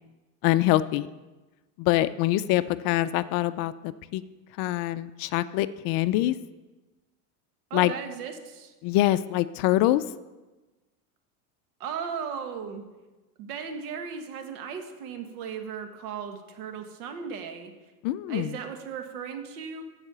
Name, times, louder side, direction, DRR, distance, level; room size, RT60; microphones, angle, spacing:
voice 1, 0.4-1.1 1.8-4.2 4.6-6.3 7.7-7.9 8.8-10.0 18.0-18.6, left 15 dB, 50° left, 14 dB, 0.5 m, -24 dB
voice 2, 7.7-8.7 11.8-12.8 13.4-17.7 18.3-19.8, right 7 dB, 70° right, 5 dB, 1.6 m, -36 dB
12.5 x 4.9 x 6.8 m, 1.2 s
supercardioid pair, 105°, 46 cm